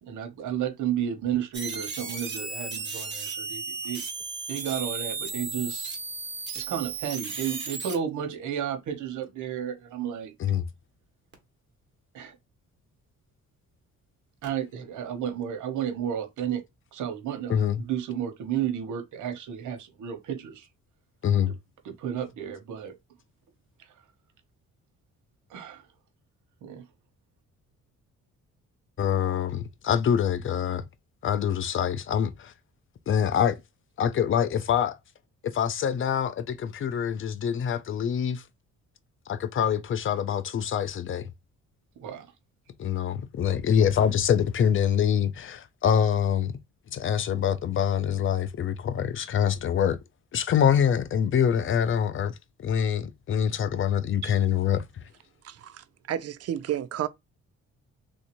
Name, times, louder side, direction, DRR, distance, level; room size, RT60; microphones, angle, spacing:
voice 1, 0.0-4.0 4.5-6.0 6.5-10.3 12.1-12.4 14.4-16.6 16.9-20.7 21.8-23.0 25.5-25.8 26.6-26.8 42.0-42.3, right 9 dB, 80° right, 1.0 m, -32 dB
sound 1, 1.5-8.0 11.3-11.4 14.4-14.5, right 4 dB, 35° right, 1.3 m, -35 dB
voice 2, 17.5-17.8 21.2-21.5 29.0-30.8 31.2-32.5 33.1-33.6 34.0-35.0 35.4-38.4 39.3-41.3 42.8-46.5 46.9-50.0 50.3-54.9, left 8 dB, 45° left, 0.5 m, -25 dB
voice 3, 55.4-57.1, right 11 dB, 55° right, 0.5 m, -32 dB
3.2 x 2.7 x 3.0 m
cardioid pair, 90°, 30 cm